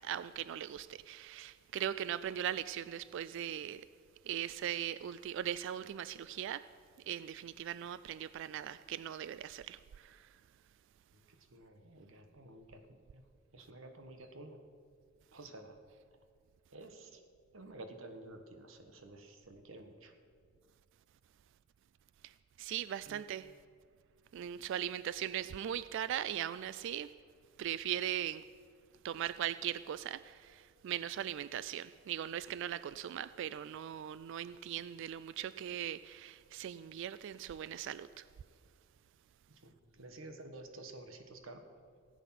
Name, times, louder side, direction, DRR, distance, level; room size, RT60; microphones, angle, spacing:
voice 1, 0.0-3.9 4.2-6.7 7.0-10.4 22.2-23.5 24.3-27.1 27.6-28.5 29.0-38.3, right 10 dB, 65° right, 0.3 m, -39 dB
voice 2, 11.1-13.2 13.5-14.6 15.3-15.8 16.7-17.2 17.5-20.1 23.1-23.2 39.5-41.6, right 2 dB, 80° right, 1.4 m, -51 dB
16.5 x 8.3 x 5.9 m
head